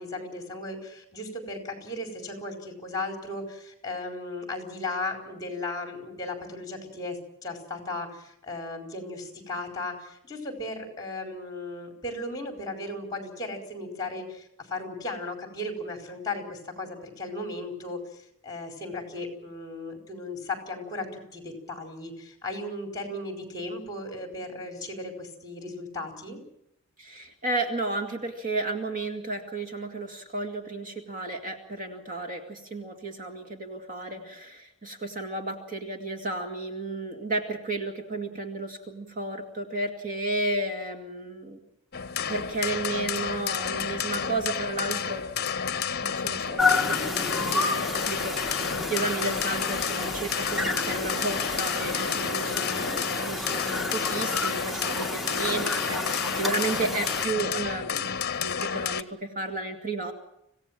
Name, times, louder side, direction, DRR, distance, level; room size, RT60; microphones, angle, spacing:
voice 1, 0.0-21.1 21.3-26.4 34.0-34.2 52.0-52.4, left 2 dB, 20° left, 4 dB, 4.5 m, -36 dB
voice 2, 27.0-41.6 42.3-45.3 46.0-60.1, right 2 dB, 40° right, 5 dB, 2.2 m, -33 dB
sound 1, 41.9-59.0, left 7 dB, 45° left, 0.9 m, -31 dB
sound 2, 46.6-57.3, left 3 dB, ahead, 1.4 m, -30 dB
26.0 x 17.0 x 7.5 m, 0.81 s
head